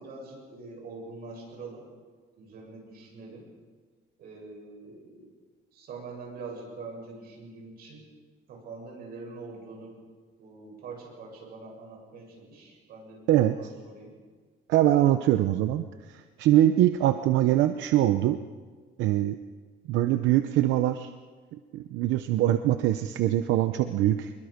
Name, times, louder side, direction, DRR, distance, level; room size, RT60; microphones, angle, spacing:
voice 1, 0.0-1.9 2.4-3.5 4.2-5.3 5.7-8.1 8.5-10.0 10.4-14.2 17.1-17.3, right 3 dB, 55° right, 0 dB, 7.9 m, -44 dB
voice 2, 14.7-18.4 19.0-19.4 19.9-21.1 21.5-24.3, right 13 dB, 85° right, 9 dB, 0.8 m, -23 dB
25.0 x 22.0 x 5.2 m, 1.5 s
cardioid pair, 170°, 19 cm